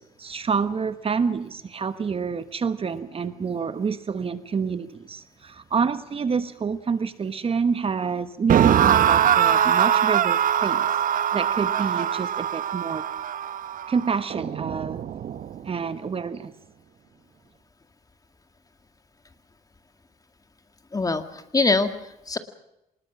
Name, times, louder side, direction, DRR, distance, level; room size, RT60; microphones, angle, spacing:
voice 1, 0.0-10.9 11.3-13.1 13.9-15.1 15.6-16.5, right 5 dB, 40° right, 12 dB, 1.2 m, -28 dB
sound 1, 8.5-15.6, right 9 dB, 60° right, 1.1 m, -22 dB
voice 2, 20.9-22.4, left 3 dB, 25° left, 8 dB, 2.1 m, -24 dB
26.0 x 20.0 x 6.1 m, 0.86 s
cardioid pair, 100°, 15 cm